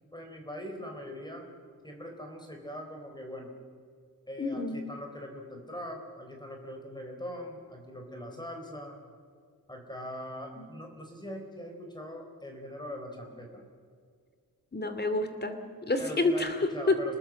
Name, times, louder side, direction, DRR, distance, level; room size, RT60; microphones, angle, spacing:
voice 1, 0.1-1.4 1.8-3.5 4.3-9.0 9.7-13.6 16.0-17.2, equal, 10° left, 2 dB, 4.1 m, -41 dB
voice 2, 4.4-4.8 10.6-10.7 14.7-17.0, left 2 dB, 30° left, 8 dB, 2.6 m, -29 dB
29.5 x 20.0 x 7.6 m, 2.1 s
wide cardioid pair, 135°, 36 cm